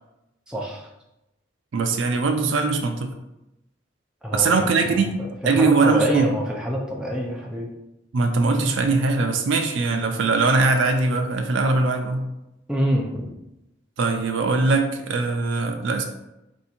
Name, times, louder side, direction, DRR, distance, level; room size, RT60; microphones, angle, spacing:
voice 1, 0.5-0.9 4.2-4.5 4.8-7.7 12.7-13.3, equal, 5° right, -3 dB, 0.5 m, -26 dB
voice 2, 1.7-3.1 4.3-6.3 8.1-12.3 14.0-16.0, right 3 dB, 70° right, 4 dB, 0.4 m, -21 dB
3.4 x 2.7 x 4.2 m, 0.90 s
head